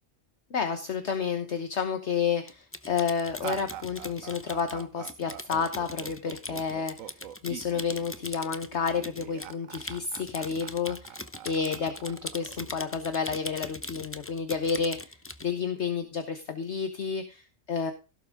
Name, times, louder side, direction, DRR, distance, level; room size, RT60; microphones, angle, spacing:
voice 1, 0.5-17.9, left 6 dB, 60° left, 7 dB, 1.4 m, -31 dB
Typing, 2.5-15.5, left 2 dB, 15° left, 0.6 m, -41 dB
sound 1, 3.4-13.3, right 10 dB, 90° right, 1.2 m, -44 dB
17.0 x 7.2 x 3.6 m, 0.30 s
omnidirectional pair, 1.4 m